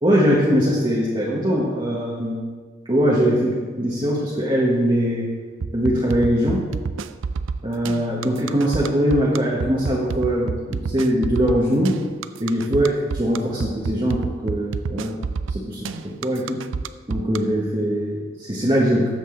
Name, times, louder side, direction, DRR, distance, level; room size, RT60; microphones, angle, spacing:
voice 1, 0.0-2.4 2.8-5.3 5.7-6.7 7.6-12.0 12.4-12.9 13.2-15.1 15.5-16.6 17.1-19.1, equal, 25° right, -4 dB, 1.2 m, -21 dB
sound 1, 5.6-17.4, right 5 dB, 75° right, 0.4 m, -28 dB
13.0 x 7.9 x 3.8 m, 1.5 s
head